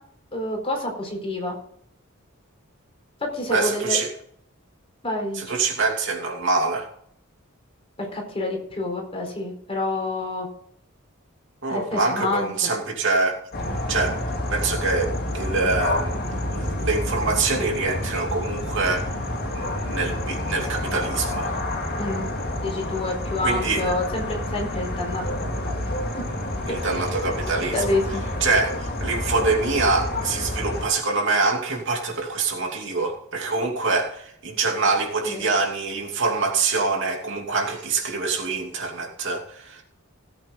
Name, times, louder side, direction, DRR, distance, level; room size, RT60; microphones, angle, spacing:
voice 1, 0.3-1.6 3.2-4.0 5.0-5.6 8.0-10.5 11.7-12.7 22.0-22.3 22.6-25.8 26.9-27.0 27.7-28.2 35.2-35.5, left 2 dB, 30° left, 1 dB, 4.2 m, -28 dB
voice 2, 3.5-4.1 5.3-6.9 11.6-13.4 13.9-14.2 14.5-16.2 16.5-19.1 19.5-21.5 23.4-23.8 26.7-28.0 28.4-39.8, right 3 dB, 65° right, 1 dB, 2.8 m, -25 dB
sound 1, 13.5-30.9, left 1 dB, 50° left, 3.2 m, -29 dB
17.5 x 8.4 x 3.9 m, 0.66 s
head